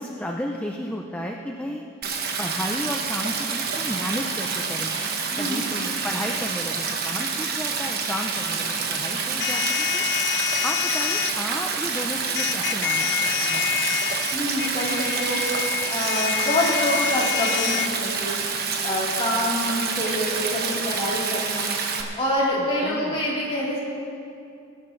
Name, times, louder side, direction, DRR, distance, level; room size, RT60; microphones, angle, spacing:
voice 1, 0.0-4.9 5.4-10.0 10.6-13.9 22.6-23.2, left 1 dB, 5° left, 1 dB, 0.6 m, -33 dB
Stream, 2.0-22.0, right 5 dB, 50° right, 1.2 m, -28 dB
voice 2, 5.3-5.6 14.3-15.4 15.9-18.3 18.8-21.8 22.2-23.8, left 1 dB, 25° left, -7 dB, 3.6 m, -26 dB
sound 1, 9.4-11.3 12.4-17.9, left 11 dB, 55° left, 0.4 m, -27 dB
23.0 x 10.5 x 3.3 m, 2.6 s
head